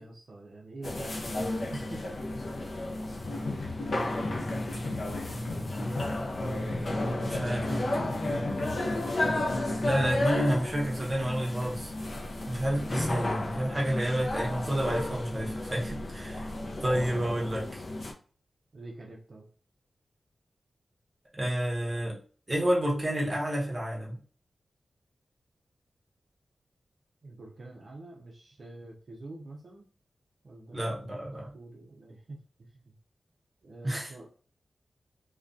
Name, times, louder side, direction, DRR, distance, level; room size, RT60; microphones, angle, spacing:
voice 1, 0.0-2.1 16.8-16.9 18.7-19.5 27.2-29.9 30.4-31.2 31.5-32.9 33.6-34.3, right 2 dB, 50° right, -1 dB, 0.4 m, -46 dB
sound 1, 0.8-18.1, left 1 dB, 55° left, 0.4 m, -33 dB
sound 2, 3.2-10.2, left 2 dB, 90° left, 0.7 m, -36 dB
voice 2, 7.2-7.9 9.8-11.9 12.4-16.5 16.8-17.8 21.3-22.2 22.5-24.2 30.7-31.5 33.8-34.1, right 1 dB, 20° right, -3 dB, 0.8 m, -29 dB
2.2 x 2.2 x 2.5 m, 0.40 s
wide cardioid pair, 150°, 0 cm